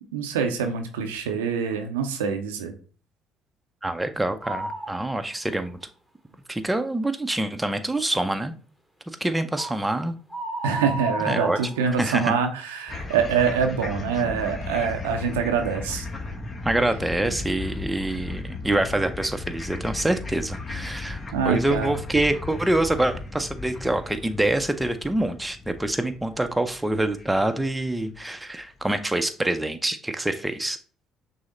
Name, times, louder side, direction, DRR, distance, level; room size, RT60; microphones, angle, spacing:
voice 1, 0.1-2.7 10.6-16.1 21.3-21.9, right 6 dB, 90° right, 5 dB, 0.6 m, -25 dB
voice 2, 3.8-5.8 6.5-8.5 9.1-10.1 11.3-11.6 12.0-12.4 16.6-21.2 21.5-30.8, right 1 dB, 10° right, 8 dB, 0.6 m, -26 dB
sound 1, 4.4-5.0 5.5-5.6 9.6-9.8 10.3-12.2, right 1 dB, 5° left, 1.1 m, -32 dB
sound 2, 12.9-28.2, left 3 dB, 40° left, 1.0 m, -36 dB
6.2 x 2.1 x 3.8 m, 0.39 s
hypercardioid pair, 60°, 0 cm